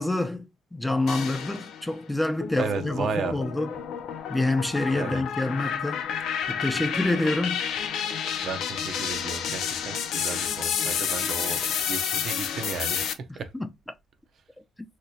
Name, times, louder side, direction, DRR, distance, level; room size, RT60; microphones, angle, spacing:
voice 1, 0.0-3.8 4.3-6.0 6.5-7.6 13.3-13.7, left 2 dB, 10° left, 0.6 m, -27 dB
sound 1, 1.1-1.9 2.4-13.1, left 8 dB, 80° left, 0.5 m, -30 dB
voice 2, 2.6-3.4 4.9-5.2 8.3-13.5, right 5 dB, 65° right, 0.6 m, -34 dB
3.2 x 2.9 x 2.7 m
cardioid pair, 90°, 0 cm